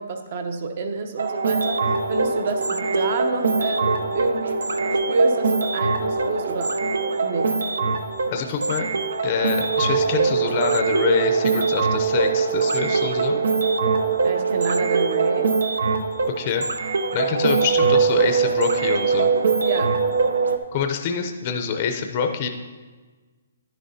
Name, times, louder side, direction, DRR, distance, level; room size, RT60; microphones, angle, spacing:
voice 1, 0.0-4.6 5.1-6.8 7.2-7.5 14.2-15.5 19.6-20.0, right 3 dB, 40° right, 7 dB, 0.7 m, -27 dB
sound 1, 1.2-20.6, right 4 dB, 90° right, 0.7 m, -22 dB
voice 2, 8.3-8.9 9.2-13.4 16.3-16.6 17.1-19.3 20.7-22.5, left 6 dB, 30° left, 5 dB, 0.5 m, -25 dB
10.5 x 9.9 x 2.7 m, 1.4 s
hypercardioid pair, 170°, 0 cm